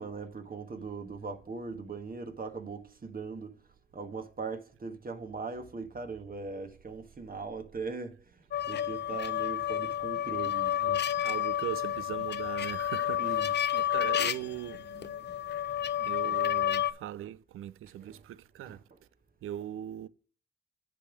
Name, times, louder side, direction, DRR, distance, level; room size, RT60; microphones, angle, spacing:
voice 1, 0.0-3.6 3.9-8.2 8.7-10.7 13.2-13.5 18.0-18.2 18.6-18.8, right 4 dB, 45° right, 1.5 m, -40 dB
sound 1, 8.5-16.9, left 11 dB, 55° left, 0.6 m, -30 dB
voice 2, 10.8-15.3 16.0-18.8 19.4-20.1, right 12 dB, 85° right, 0.4 m, -40 dB
9.9 x 3.5 x 6.2 m
supercardioid pair, 50°, 21 cm